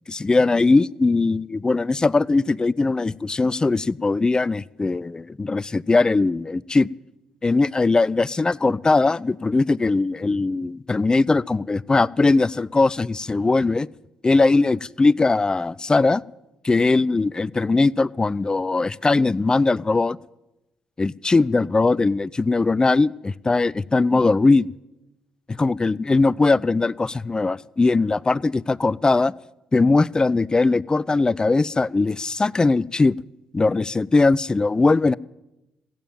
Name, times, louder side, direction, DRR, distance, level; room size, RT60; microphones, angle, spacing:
voice 1, 0.1-6.9 7.4-13.9 14.2-16.2 16.6-20.2 21.0-24.7 25.5-29.3 29.7-33.2 33.5-35.2, left 3 dB, 25° left, 21 dB, 0.4 m, -20 dB
15.5 x 8.8 x 9.1 m, 0.95 s
hypercardioid pair, 50°, 3 cm